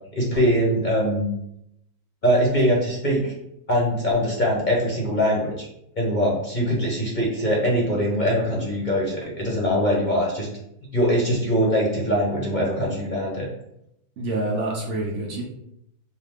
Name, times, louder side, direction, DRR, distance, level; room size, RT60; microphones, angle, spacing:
voice 1, 0.1-1.3 2.2-3.3 3.7-5.7 6.0-10.5 10.9-13.5, equal, 35° left, -3 dB, 0.9 m, -22 dB
voice 2, 14.2-15.4, right 2 dB, 60° right, -1 dB, 1.0 m, -27 dB
4.6 x 2.2 x 3.5 m, 0.79 s
omnidirectional pair, 1.6 m